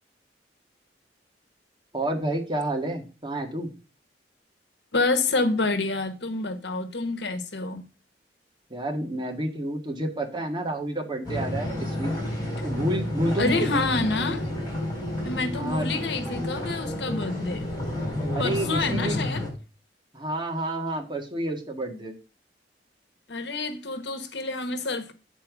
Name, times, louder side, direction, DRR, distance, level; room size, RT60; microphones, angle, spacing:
voice 1, 1.9-3.7 8.7-12.1 12.6-13.7 15.6-15.9 18.3-19.2 20.1-22.1, right 1 dB, 25° right, 1.7 m, -29 dB
voice 2, 4.9-7.8 13.4-14.4 15.2-17.7 18.4-19.4 23.3-25.1, left 3 dB, 75° left, 1.1 m, -28 dB
sound 1, 11.2-19.5, left 1 dB, 25° left, 3.3 m, -30 dB
8.7 x 4.4 x 5.9 m
head